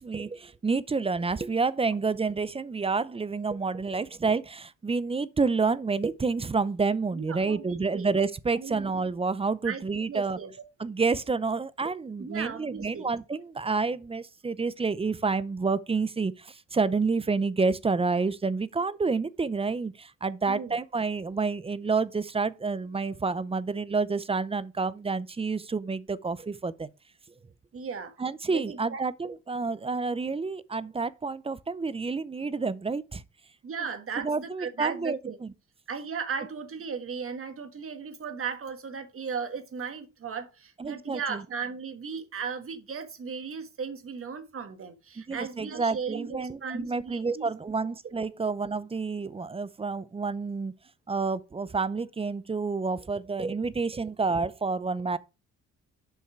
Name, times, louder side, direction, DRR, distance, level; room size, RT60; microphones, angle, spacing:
voice 1, 0.0-10.4 10.8-26.9 28.2-33.2 34.2-35.5 40.8-41.4 45.3-50.7 51.1-55.2, right 4 dB, 20° right, 0.6 m, -29 dB
voice 2, 7.1-8.1 8.5-8.9 9.6-10.5 12.2-13.1 20.5-20.8 27.7-28.1 28.5-29.3 33.6-35.4 35.9-47.5, right 6 dB, 45° right, 1.6 m, -36 dB
8.1 x 5.6 x 4.5 m
cardioid pair, 90°, 30 cm